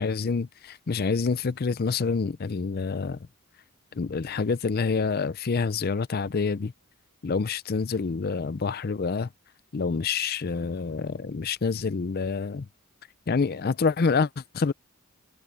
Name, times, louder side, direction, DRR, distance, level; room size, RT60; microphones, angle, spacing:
voice 1, 0.0-3.2 4.0-6.7 7.2-9.3 9.7-12.7 13.3-14.7, left 4 dB, 45° left, 0.5 m, -27 dB
head